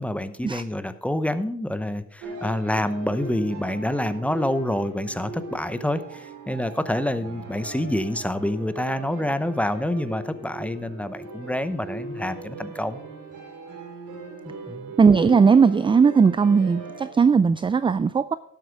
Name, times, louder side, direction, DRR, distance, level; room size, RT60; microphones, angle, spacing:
voice 1, 0.0-13.0 14.5-14.9, left 1 dB, 5° left, 12 dB, 0.8 m, -27 dB
sound 1, 2.2-17.1, right 3 dB, 85° right, 2.7 m, -39 dB
voice 2, 15.0-18.3, right 5 dB, 20° right, 15 dB, 0.3 m, -18 dB
11.5 x 8.0 x 5.1 m, 0.68 s
cardioid pair, 90°, 30 cm